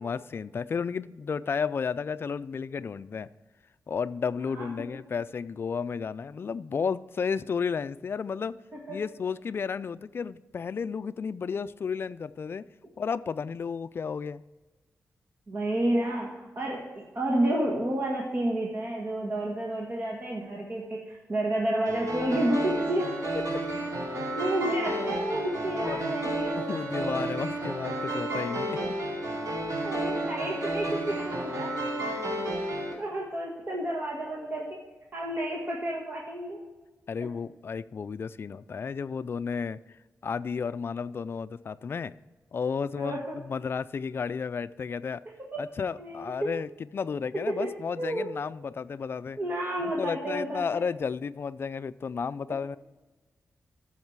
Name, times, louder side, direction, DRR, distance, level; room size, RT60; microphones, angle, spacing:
voice 1, 0.0-3.3 3.9-8.6 8.9-12.7 13.0-14.4 23.5-23.6 25.9-26.1 26.6-29.0 37.1-39.8 40.2-42.1 42.5-45.2 45.6-49.4 49.8-52.8, left 6 dB, 45° left, 14 dB, 0.4 m, -32 dB
voice 2, 15.5-23.1 24.3-26.8 29.1-29.2 29.8-31.7 32.7-34.8 35.1-36.6 43.0-43.4 46.0-46.3 47.6-47.7 48.0-48.3 49.4-50.8, right 1 dB, 40° right, -2 dB, 1.6 m, -30 dB
sound 1, 21.9-32.9, right 1 dB, 85° right, 2.6 m, -31 dB
14.0 x 5.8 x 4.7 m, 1.2 s
wide cardioid pair, 150°, 5 cm